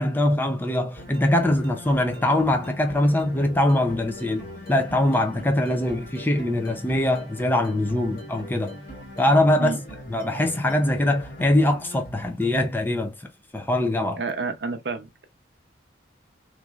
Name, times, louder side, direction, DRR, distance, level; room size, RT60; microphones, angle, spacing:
voice 1, 0.0-8.8 9.2-9.8 10.1-13.1 13.5-14.2, left 1 dB, 10° left, 0.4 m, -22 dB
sound 1, 1.0-12.9, left 1 dB, 55° left, 1.5 m, -41 dB
voice 2, 14.2-15.2, right 4 dB, 65° right, 0.6 m, -30 dB
3.0 x 2.4 x 2.3 m
head